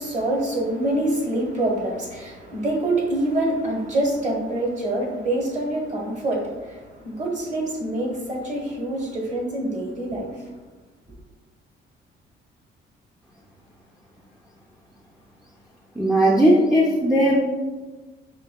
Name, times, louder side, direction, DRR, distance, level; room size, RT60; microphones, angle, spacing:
voice 1, 0.0-10.3, right 1 dB, 40° right, -1 dB, 1.1 m, -26 dB
voice 2, 16.0-17.4, right 1 dB, 5° right, -2 dB, 0.5 m, -17 dB
5.7 x 2.7 x 2.2 m, 1.3 s
cardioid pair, 90°, 20 cm